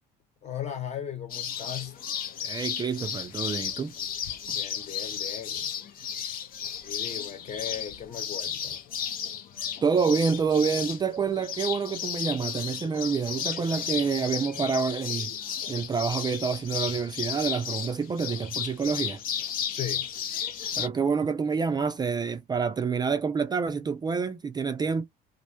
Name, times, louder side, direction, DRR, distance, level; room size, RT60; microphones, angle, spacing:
voice 1, 0.4-2.0 4.5-5.7 6.8-8.9 19.6-20.1, left 9 dB, 40° left, 1.0 m, -37 dB
sound 1, 1.3-20.9, left 8 dB, 60° left, 0.5 m, -34 dB
voice 2, 2.4-3.9 9.8-15.3 15.7-19.2 20.8-25.0, right 5 dB, 25° right, 0.3 m, -27 dB
2.5 x 2.1 x 2.8 m
cardioid pair, 110°, 17 cm